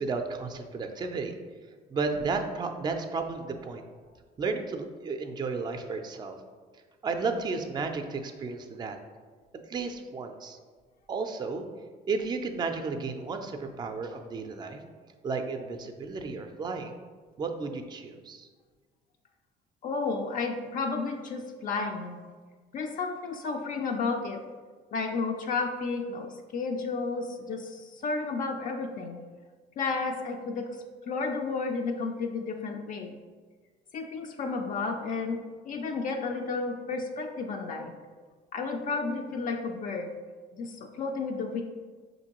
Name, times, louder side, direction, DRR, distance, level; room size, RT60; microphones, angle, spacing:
voice 1, 0.0-1.4 1.9-3.8 4.4-6.4 7.0-9.0 9.5-10.6 11.1-11.7 12.1-14.8 15.2-17.0 17.4-18.5, right 4 dB, 25° right, 6 dB, 0.4 m, -33 dB
voice 2, 19.8-22.2 22.7-24.4 24.9-29.2 29.8-30.7 31.1-33.2 33.9-35.4 35.7-37.9 38.5-40.1 40.5-41.6, left 4 dB, 50° left, 3 dB, 0.4 m, -32 dB
5.6 x 2.6 x 2.9 m, 1.5 s
cardioid pair, 110°, 17 cm